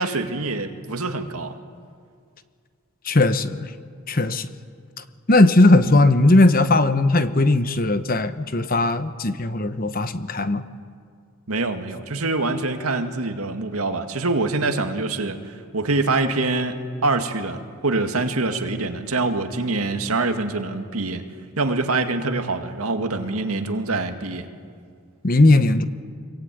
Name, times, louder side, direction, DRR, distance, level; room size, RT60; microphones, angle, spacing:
voice 1, 0.0-1.5 11.5-21.2 21.6-24.5, right 3 dB, 85° right, 6 dB, 2.0 m, -25 dB
voice 2, 3.1-3.7 4.1-4.5 5.3-10.6 25.2-25.9, left 2 dB, 40° left, 11 dB, 1.0 m, -18 dB
25.5 x 23.0 x 9.3 m, 2.1 s
head